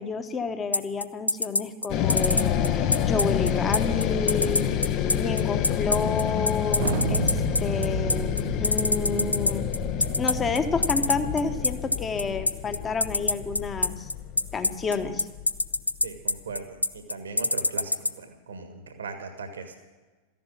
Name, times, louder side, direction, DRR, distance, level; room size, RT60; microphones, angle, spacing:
voice 1, 0.0-4.7 5.2-9.7 10.2-14.1 14.5-15.3, left 4 dB, 20° left, 8 dB, 1.3 m, -30 dB
sound 1, 0.7-18.1, left 2 dB, 85° left, 0.4 m, -24 dB
sound 2, 1.9-16.2, left 9 dB, 40° left, 0.9 m, -28 dB
Thunder, 6.8-12.0, right 11 dB, 55° right, 0.5 m, -34 dB
voice 2, 16.0-19.8, right 4 dB, 70° right, 7 dB, 1.7 m, -39 dB
14.5 x 11.0 x 7.5 m, 1.3 s
figure-of-eight pair, 90°, 0 cm